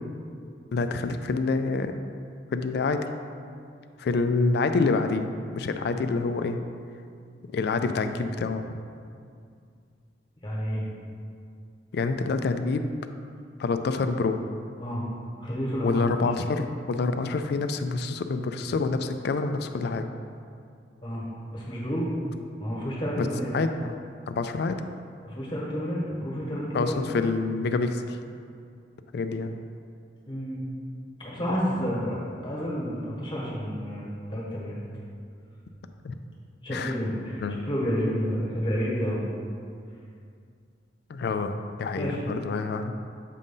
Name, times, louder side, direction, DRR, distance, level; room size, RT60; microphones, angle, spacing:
voice 1, 0.7-2.0 2.5-3.0 4.0-6.6 7.5-8.8 11.9-12.9 13.6-14.4 15.8-20.1 23.2-23.3 23.5-23.9 24.3-24.8 26.7-28.2 29.1-29.5 36.0-36.1 36.7-37.0 37.4-37.7 41.1-41.5 41.8-42.9, left 3 dB, 60° left, 8 dB, 0.3 m, -27 dB
voice 2, 10.4-10.8 14.8-15.0 15.4-16.0 21.0-21.2 21.5-22.1 22.6-23.5 25.2-27.0 30.3-30.6 31.2-34.8 36.6-39.2 41.9-42.2, equal, 25° left, -6 dB, 1.2 m, -30 dB
7.4 x 2.6 x 5.4 m, 2.3 s
head